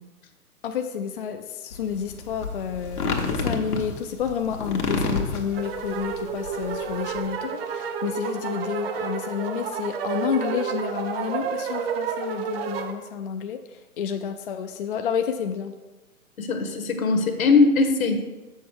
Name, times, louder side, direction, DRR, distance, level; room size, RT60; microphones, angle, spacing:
voice 1, 0.6-15.7, left 8 dB, 40° left, 6 dB, 0.4 m, -30 dB
sound 1, 1.7-7.3, left 3 dB, 85° left, 1.4 m, -29 dB
sound 2, 5.5-12.9, right 6 dB, 40° right, 0.8 m, -30 dB
voice 2, 16.4-18.2, left 4 dB, 70° left, 6 dB, 1.3 m, -20 dB
7.0 x 6.4 x 4.6 m, 1.2 s
figure-of-eight pair, 125°, 44 cm